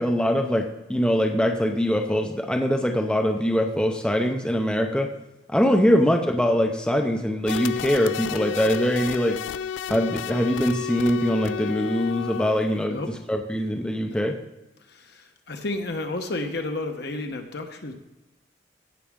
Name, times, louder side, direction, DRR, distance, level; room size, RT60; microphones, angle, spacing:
voice 1, 0.0-5.1 5.5-9.4 9.9-14.3, equal, 5° left, 3 dB, 0.5 m, -23 dB
sound 1, 7.5-12.8, left 8 dB, 85° left, 0.3 m, -31 dB
voice 2, 14.9-17.9, left 2 dB, 60° left, 5 dB, 1.0 m, -32 dB
15.5 x 6.2 x 3.6 m, 1.0 s
head